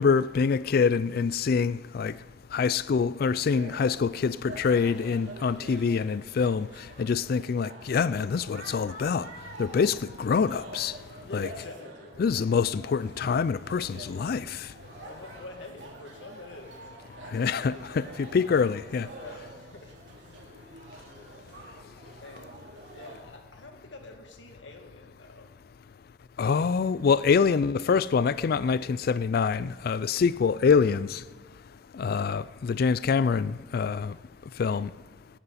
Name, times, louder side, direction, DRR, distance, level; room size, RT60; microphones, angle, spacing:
voice 1, 0.0-2.2 2.5-6.7 7.0-9.3 9.6-10.9 11.3-11.5 12.2-14.7 17.3-19.1 26.4-31.2 31.9-34.1 34.6-34.9, left 5 dB, 55° left, 0.3 m, -25 dB
sound 1, 3.5-23.2, right 2 dB, 80° right, 2.9 m, -47 dB
voice 2, 11.2-12.3 15.0-16.9 19.1-20.0 22.0-25.5, left 2 dB, 90° left, 2.2 m, -46 dB
18.0 x 17.5 x 4.2 m
head